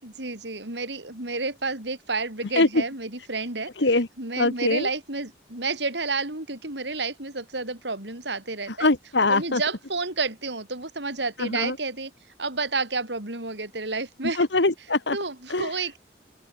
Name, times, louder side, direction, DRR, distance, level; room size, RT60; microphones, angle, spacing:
voice 1, 0.0-3.7 4.2-8.9 9.3-12.1 12.4-14.5 15.1-16.0, right 3 dB, 80° right, 5.6 m, -30 dB
voice 2, 4.4-4.9 8.7-9.6 11.4-11.8 14.4-15.2 15.5-15.7, left 2 dB, 85° left, 2.0 m, -22 dB
open air
head